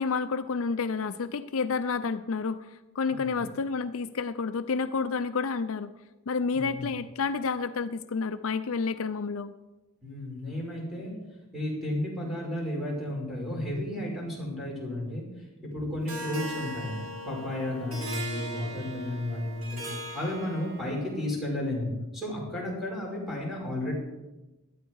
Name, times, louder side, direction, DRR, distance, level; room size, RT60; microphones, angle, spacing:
voice 1, 0.0-5.9 6.3-9.5, left 4 dB, 65° left, 11 dB, 0.5 m, -30 dB
voice 2, 3.1-3.4 6.5-6.8 10.0-11.1 11.5-15.3 15.7-16.9 17.2-19.8 20.1-23.9, left 1 dB, ahead, -3 dB, 5.6 m, -33 dB
Harp, 16.1-21.1, right 1 dB, 65° right, 2.2 m, -39 dB
18.0 x 12.5 x 4.7 m, 1.1 s
head